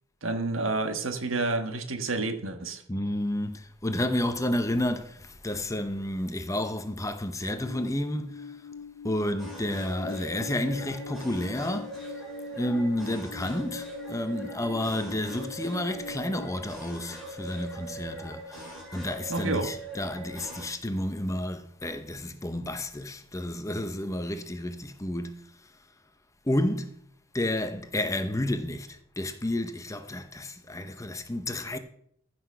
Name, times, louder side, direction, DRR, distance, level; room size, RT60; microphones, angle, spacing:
voice 1, 0.2-2.8 19.3-19.7, right 3 dB, 75° right, 1.4 m, -29 dB
voice 2, 2.9-8.5 9.0-12.1 12.5-25.4 26.5-26.9 27.3-31.8, left 1 dB, 15° left, 0.8 m, -31 dB
Alarm, 7.5-16.5, left 6 dB, 85° left, 0.5 m, -44 dB
sound 1, 9.4-20.7, right 1 dB, ahead, 4.4 m, -41 dB
14.5 x 6.0 x 5.7 m
head